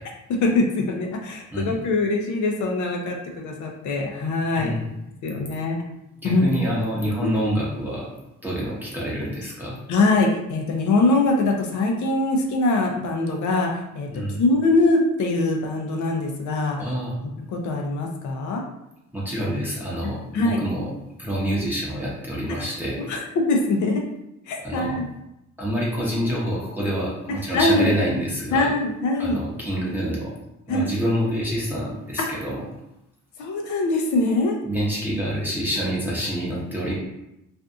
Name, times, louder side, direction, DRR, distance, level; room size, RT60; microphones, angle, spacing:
voice 1, 0.3-4.7 5.2-5.8 6.2-6.5 9.9-14.1 14.4-16.8 17.5-18.6 20.3-20.6 22.6-22.7 23.1-24.0 24.5-25.1 27.5-28.2 28.5-29.4 30.7-30.8 32.3-32.4 33.4-34.6, left 2 dB, 70° left, 1 dB, 0.6 m, -22 dB
voice 2, 6.2-8.1 8.4-9.8 14.1-14.4 16.7-17.1 19.1-20.9 21.2-23.1 24.6-25.0 25.6-28.7 29.2-30.3 30.7-32.6 34.6-36.9, equal, 5° right, -7 dB, 0.7 m, -27 dB
2.6 x 2.5 x 2.4 m, 0.87 s
cardioid pair, 90°, 30 cm